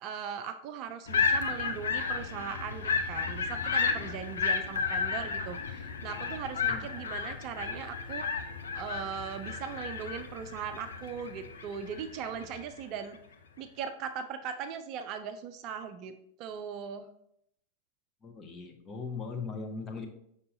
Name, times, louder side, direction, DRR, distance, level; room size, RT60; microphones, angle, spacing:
voice 1, 0.0-8.3 8.7-13.2 13.6-16.1 16.4-17.1, right 7 dB, 40° right, 8 dB, 0.4 m, -39 dB
sound 1, 1.1-12.6, left 5 dB, 65° left, 0.6 m, -33 dB
voice 2, 18.2-20.1, left 4 dB, 25° left, 4 dB, 0.9 m, -39 dB
6.7 x 5.4 x 2.6 m, 0.72 s
figure-of-eight pair, 90°, 0 cm